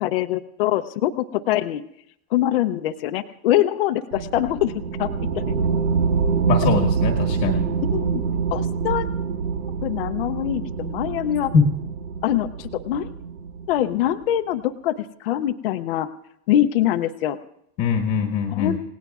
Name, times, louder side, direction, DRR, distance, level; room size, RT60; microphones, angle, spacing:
voice 1, 0.0-1.8 2.3-4.7 5.0-5.1 5.5-5.6 7.9-8.2 8.5-9.1 9.8-11.5 12.2-13.1 13.7-16.1 16.5-17.4 18.5-18.8, left 12 dB, 45° left, 7 dB, 0.6 m, -23 dB
sound 1, 4.1-14.1, right 6 dB, 85° right, 1.7 m, -25 dB
voice 2, 6.4-7.7 11.5-11.6 17.8-18.8, left 6 dB, 25° left, 3 dB, 1.2 m, -22 dB
29.0 x 17.5 x 2.4 m, 0.73 s
supercardioid pair, 175°, 42 cm